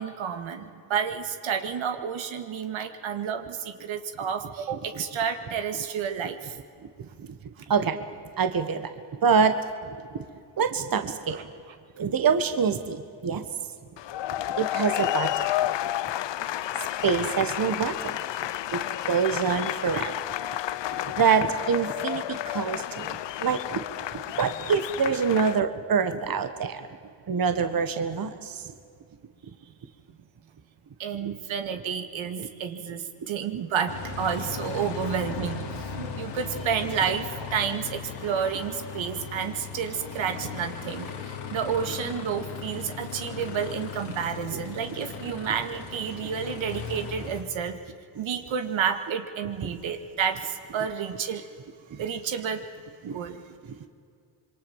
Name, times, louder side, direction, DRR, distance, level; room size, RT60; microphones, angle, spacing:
voice 1, 0.0-6.6 11.3-11.4 31.0-47.8 48.2-51.5 52.0-52.7 53.0-53.4, right 7 dB, 75° right, 7 dB, 2.2 m, -30 dB
voice 2, 8.4-8.9 9.2-9.6 10.6-11.5 12.0-13.5 14.6-15.5 17.0-18.2 18.7-20.1 21.2-23.8 24.1-26.9 27.3-28.6 31.2-31.3 51.9-52.0 53.1-53.2, right 6 dB, 45° right, 9 dB, 1.7 m, -25 dB
sound 1, 14.0-25.6, left 13 dB, 65° left, 0.8 m, -31 dB
Aircraft, 33.9-47.4, left 5 dB, 90° left, 3.4 m, -37 dB
27.0 x 23.0 x 7.4 m, 2.3 s
cardioid pair, 75°, 47 cm